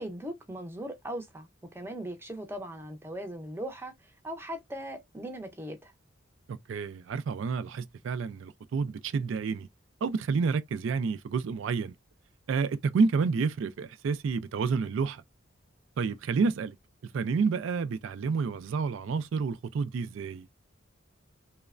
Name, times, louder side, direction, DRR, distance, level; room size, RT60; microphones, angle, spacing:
voice 1, 0.0-5.9, right 1 dB, 10° right, 0.5 m, -39 dB
voice 2, 6.5-9.7 10.0-11.9 12.5-15.2 16.0-16.8 17.1-20.5, right 5 dB, 75° right, 0.3 m, -29 dB
3.1 x 2.0 x 2.4 m
head